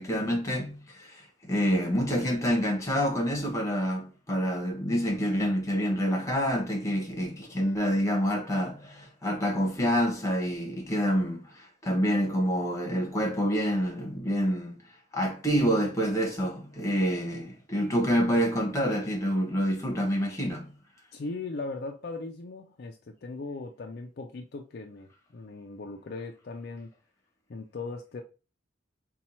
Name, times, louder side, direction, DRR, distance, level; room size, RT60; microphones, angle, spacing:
voice 1, 0.0-14.8 15.1-20.7, equal, 15° left, 0.9 m, -27 dB
voice 2, 21.1-26.9 27.5-28.2, left 3 dB, 50° left, 0.4 m, -38 dB
4.2 x 2.3 x 4.2 m
head